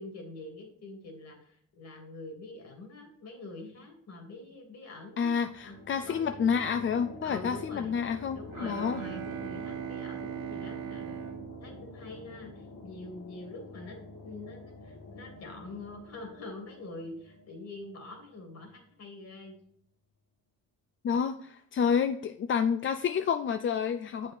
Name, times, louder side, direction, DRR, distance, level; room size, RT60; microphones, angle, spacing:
voice 1, 0.0-5.3 5.6-6.5 7.2-8.0 8.3-11.2 11.6-14.0 14.2-19.6, left 2 dB, 60° left, 2 dB, 2.7 m, -45 dB
voice 2, 5.2-9.0 21.0-24.3, left 7 dB, 40° left, 9 dB, 0.5 m, -29 dB
sound 1, 5.4-18.8, left 2 dB, 75° left, 2.1 m, -47 dB
Bowed string instrument, 8.5-12.8, right 11 dB, 90° right, 1.1 m, -40 dB
7.8 x 5.3 x 4.6 m, 0.65 s
cardioid pair, 90°, 30 cm